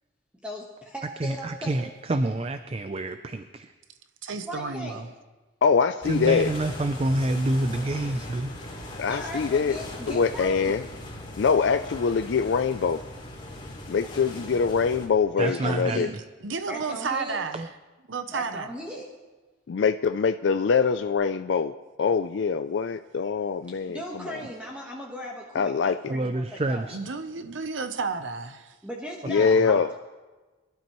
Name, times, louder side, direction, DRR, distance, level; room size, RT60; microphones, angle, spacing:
voice 1, 0.4-1.9 4.4-5.0 9.1-10.8 15.4-16.1 16.7-17.4 18.3-19.1 23.7-26.9 28.8-29.8, equal, 5° right, 1.3 m, -38 dB
voice 2, 1.2-3.7 6.0-8.5 15.4-16.2 17.5-17.7 26.1-27.0 29.4-29.8, right 2 dB, 30° right, 0.4 m, -28 dB
voice 3, 4.2-5.1 15.6-16.1 16.4-17.7 18.1-18.7 24.4-24.5 26.9-28.8, right 4 dB, 75° right, 0.8 m, -32 dB
voice 4, 5.6-6.5 9.0-9.8 10.1-10.8 11.4-13.0 13.9-16.1 19.7-21.7 22.0-24.0 24.3-24.4 25.5-26.1 29.3-30.0, left 5 dB, 60° left, 0.4 m, -23 dB
sound 1, 6.0-15.1, left 1 dB, 25° left, 2.7 m, -39 dB
23.0 x 12.0 x 3.1 m
head